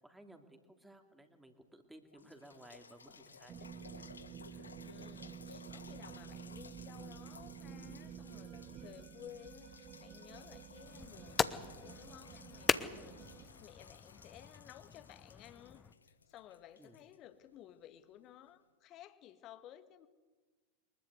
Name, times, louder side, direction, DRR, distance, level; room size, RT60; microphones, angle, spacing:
voice 1, 0.0-4.8 16.8-17.0, right 1 dB, 5° right, 5 dB, 2.7 m, -58 dB
sound 1, 1.6-1.7 2.1-17.8 18.5-18.6, left 5 dB, 75° left, 1.3 m, -58 dB
sound 2, 3.5-13.5, right 9 dB, 30° right, 1.5 m, -51 dB
voice 2, 4.8-15.9 16.3-20.1, left 11 dB, 35° left, 12 dB, 1.7 m, -56 dB
sound 3, 10.9-15.9, left 6 dB, 20° left, 1.1 m, -39 dB
23.5 x 21.5 x 8.4 m, 1.3 s
figure-of-eight pair, 90°, 0 cm